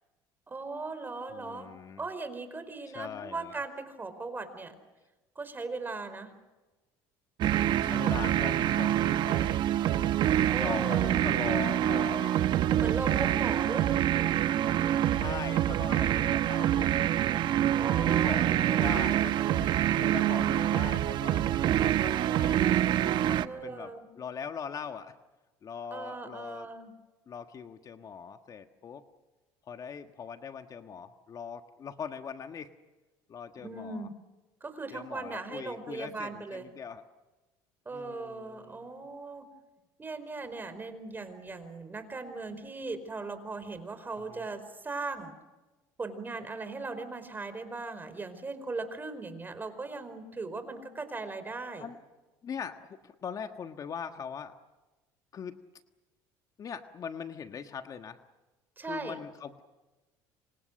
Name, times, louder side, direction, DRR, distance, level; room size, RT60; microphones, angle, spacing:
voice 1, 0.5-4.8 5.3-6.3 10.5-11.2 12.8-14.1 17.8-18.3 18.6-19.0 23.4-24.1 25.9-26.9 33.6-34.1 34.6-36.7 37.8-39.5 40.0-45.3 46.0-51.9 58.8-59.2, right 3 dB, 20° right, 10 dB, 4.8 m, -38 dB
voice 2, 1.3-2.0 2.9-3.6 7.8-9.6 10.6-12.4 15.1-16.9 18.0-21.4 22.0-25.1 25.6-26.7 27.3-29.0 29.7-32.7 33.3-34.1 34.9-37.0 37.9-38.9 44.3-44.4 51.8-52.0 52.4-54.5 55.3-55.6 56.6-58.2 58.8-59.6, left 7 dB, 40° left, 7 dB, 1.5 m, -41 dB
sound 1, 7.4-23.4, right 12 dB, 55° right, 1.0 m, -26 dB
28.0 x 26.0 x 6.5 m, 1.1 s
supercardioid pair, 90°, 9 cm